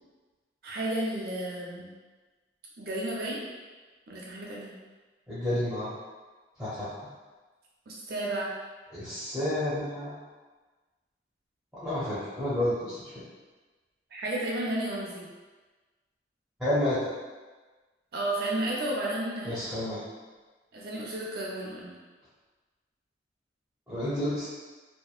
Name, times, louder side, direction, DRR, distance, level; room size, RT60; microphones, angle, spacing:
voice 1, 0.6-1.9 2.8-3.4 4.1-4.8 7.9-8.5 14.1-15.3 18.1-19.6 20.7-22.0, right 1 dB, 55° right, -4 dB, 0.6 m, -32 dB
voice 2, 5.3-5.9 6.6-7.1 8.9-10.2 11.7-13.1 16.6-17.0 19.4-20.0 23.9-24.5, left 1 dB, 5° right, -13 dB, 0.6 m, -30 dB
2.9 x 2.1 x 2.4 m, 1.3 s
head